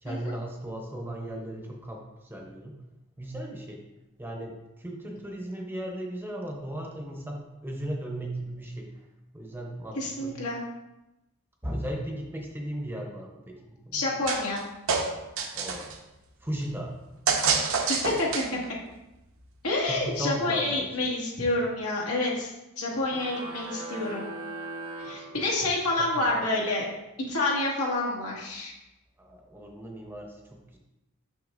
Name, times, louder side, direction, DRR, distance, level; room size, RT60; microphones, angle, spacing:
voice 1, 0.0-2.8 3.2-3.8 4.2-8.9 9.3-10.3 11.6-14.1 15.5-15.9 16.4-16.9 19.9-20.9 26.0-26.5 29.2-30.8, right 1 dB, 10° right, 0 dB, 0.7 m, -36 dB
voice 2, 9.9-10.6 13.9-14.6 17.9-18.6 19.6-24.3 25.0-26.9 27.2-28.7, left 2 dB, 85° left, -4 dB, 1.8 m, -28 dB
sound 1, 14.3-14.6 14.9-16.0 17.3-18.7, right 5 dB, 65° right, 0.7 m, -27 dB
sound 2, 23.1-26.0, right 2 dB, 85° right, 1.0 m, -40 dB
6.6 x 6.2 x 2.5 m, 0.96 s
head